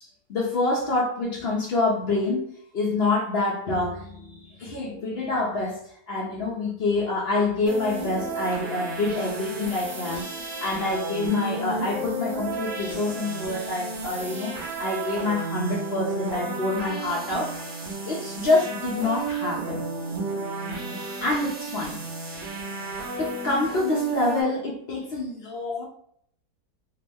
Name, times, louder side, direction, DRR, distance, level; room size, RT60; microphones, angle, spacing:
voice 1, 0.3-17.5 18.1-19.8 21.2-22.0 23.2-25.9, left 2 dB, 65° left, 0.6 m, -27 dB
sound 1, 7.7-24.4, right 3 dB, 90° right, 1.6 m, -32 dB
3.4 x 2.0 x 3.4 m
omnidirectional pair, 1.8 m